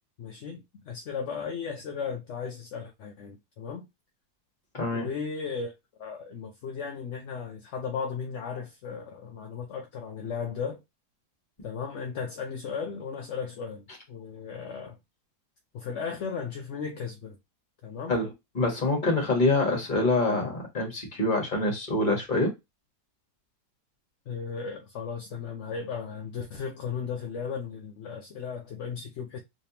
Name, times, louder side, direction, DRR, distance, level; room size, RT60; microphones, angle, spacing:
voice 1, 0.2-3.9 4.9-5.7 6.0-10.8 11.6-15.0 15.7-17.4 17.8-18.2 24.3-29.4, left 6 dB, 60° left, 0.8 m, -36 dB
voice 2, 4.7-5.1 18.1-22.5, left 2 dB, 30° left, 1.4 m, -26 dB
3.3 x 3.2 x 2.8 m
omnidirectional pair, 1.6 m